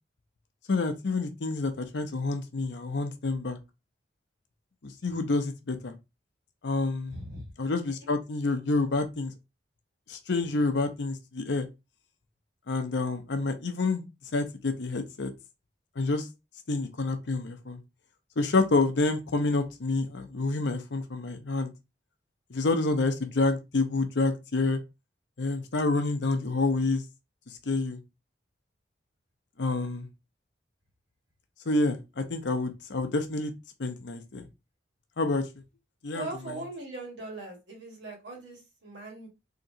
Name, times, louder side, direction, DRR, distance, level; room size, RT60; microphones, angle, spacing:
voice 1, 0.7-3.6 4.8-5.9 6.6-7.2 7.6-9.3 10.1-11.7 12.7-14.0 14.3-15.3 16.0-16.2 16.7-17.8 18.4-21.7 22.5-24.8 25.4-27.0 27.7-28.0 29.6-30.1 31.7-33.5 33.8-34.5 35.2-35.4 36.0-36.2, left 3 dB, 70° left, 0.6 m, -28 dB
voice 2, 7.1-7.5 36.1-39.3, right 2 dB, 75° right, 1.6 m, -40 dB
3.8 x 2.9 x 2.7 m
head